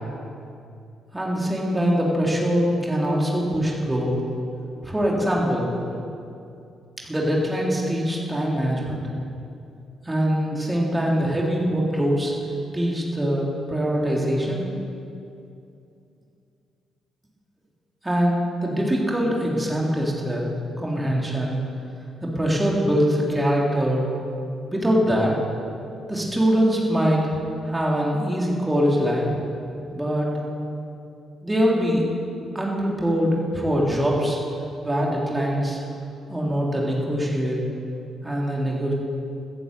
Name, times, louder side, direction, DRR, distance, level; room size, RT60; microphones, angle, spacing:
voice 1, 1.1-4.1 4.8-5.7 7.0-9.0 10.0-12.3 12.7-14.6 18.0-21.6 22.2-24.1 24.7-25.3 26.1-27.3 27.6-29.3 29.9-30.3 31.4-32.1 32.5-34.4 34.8-35.8 36.3-37.6 38.2-38.9, equal, 15° right, -3 dB, 3.5 m, -23 dB
14.0 x 10.5 x 8.4 m, 2.6 s
cardioid pair, 90°, 0 cm